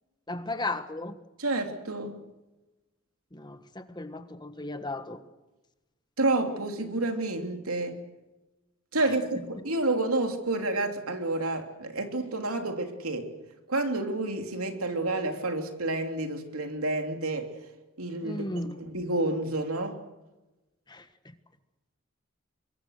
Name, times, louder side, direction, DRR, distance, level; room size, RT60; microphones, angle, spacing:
voice 1, 0.3-1.1 3.3-5.2 9.0-9.1 18.2-18.8 20.9-21.0, left 2 dB, 20° left, 1.4 m, -35 dB
voice 2, 1.4-2.2 6.2-8.0 8.9-13.3 13.7-17.5 18.0-18.5 18.8-20.0, right 2 dB, 90° right, 3.2 m, -29 dB
25.5 x 23.0 x 6.6 m
head